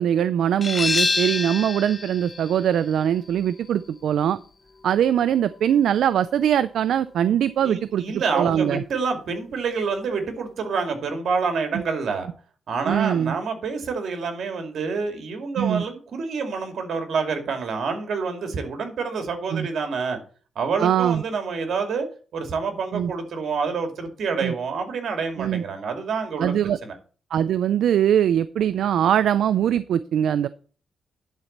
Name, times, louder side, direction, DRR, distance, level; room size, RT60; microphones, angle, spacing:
voice 1, 0.0-4.4 4.8-8.8 11.7-11.8 12.9-13.4 15.6-15.8 19.5-19.7 20.8-21.2 22.9-23.1 24.4-24.5 25.4-25.6 26.4-26.8 27.3-30.5, right 9 dB, 85° right, 14 dB, 0.4 m, -22 dB
sound 1, 0.6-6.0, left 3 dB, 35° left, 1.1 m, -29 dB
voice 2, 7.6-12.3 12.7-20.2 20.6-22.1 22.3-26.5 26.8-27.0, right 5 dB, 70° right, 5 dB, 2.4 m, -27 dB
11.0 x 4.1 x 7.2 m, 0.39 s
cardioid pair, 105°, 0 cm